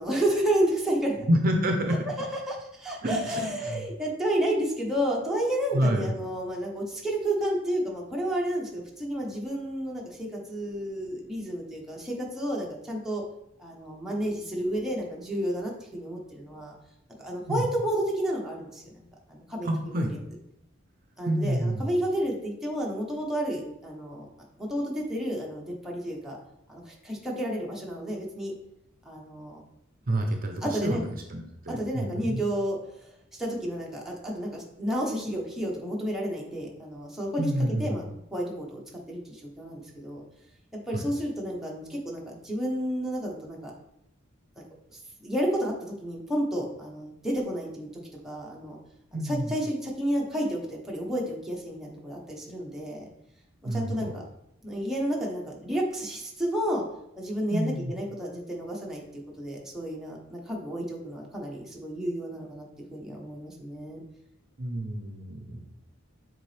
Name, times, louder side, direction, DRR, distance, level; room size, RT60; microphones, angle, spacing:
voice 1, 0.0-1.3 2.2-13.2 13.6-16.7 17.2-18.8 19.3-20.0 21.2-24.2 24.6-26.4 26.7-28.5 29.0-29.6 30.6-31.0 31.7-32.8 33.3-37.5 37.8-38.8 39.1-40.2 40.9-43.7 45.2-48.8 49.1-53.1 53.7-54.2 54.6-56.8 57.2-64.0, right 1 dB, ahead, -3 dB, 1.1 m, -31 dB
voice 2, 1.3-2.0 3.0-4.2 5.7-6.1 17.5-17.6 19.6-20.1 21.2-21.9 30.1-32.4 37.4-38.0 40.9-41.1 49.1-49.5 53.6-54.1 57.5-57.9 64.6-65.6, right 1 dB, 45° right, 3 dB, 0.7 m, -28 dB
7.1 x 3.9 x 3.4 m, 0.82 s
head